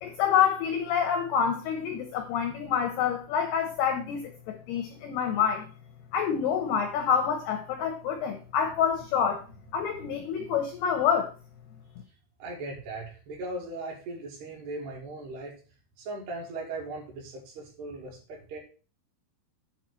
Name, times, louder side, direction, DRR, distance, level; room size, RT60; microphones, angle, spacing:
voice 1, 0.0-5.7 6.1-9.4 9.7-11.3, left 7 dB, 80° left, 4 dB, 2.3 m, -27 dB
voice 2, 12.4-15.5 16.0-18.6, right 2 dB, 60° right, -1 dB, 3.8 m, -38 dB
9.2 x 4.2 x 6.0 m, 0.36 s
omnidirectional pair, 5.9 m